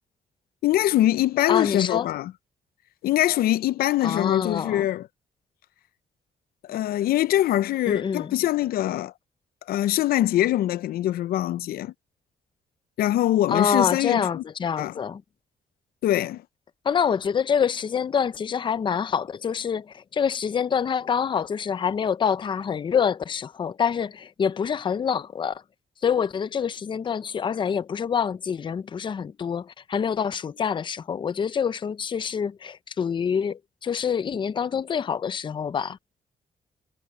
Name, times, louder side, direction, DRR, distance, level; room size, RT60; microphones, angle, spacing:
voice 1, 0.6-2.3 3.0-5.1 6.7-9.1 9.7-11.9 13.0-14.4 14.8-14.9 16.0-16.4, left 13 dB, 85° left, 0.4 m, -23 dB
voice 2, 1.5-2.1 4.0-4.9 7.9-8.4 13.5-15.2 16.8-25.6 26.0-36.0, left 7 dB, 30° left, 0.5 m, -26 dB
cardioid pair, 135°, 15 cm